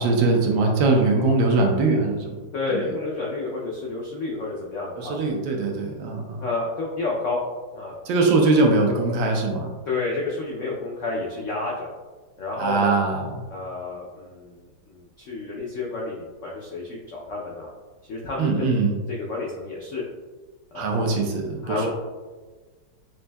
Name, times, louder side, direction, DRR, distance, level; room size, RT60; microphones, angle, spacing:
voice 1, 0.0-2.4 2.7-2.9 5.0-6.4 8.1-9.7 12.6-13.4 18.4-18.9 20.7-21.9, right 3 dB, 90° right, 1 dB, 1.4 m, -21 dB
voice 2, 2.5-5.2 6.4-7.4 7.7-8.0 9.9-11.9 12.4-13.0 13.5-17.7 18.1-20.0 20.7-21.1 21.6-21.9, left 3 dB, 80° left, -3 dB, 0.6 m, -30 dB
6.3 x 2.6 x 2.2 m, 1.3 s
omnidirectional pair, 2.0 m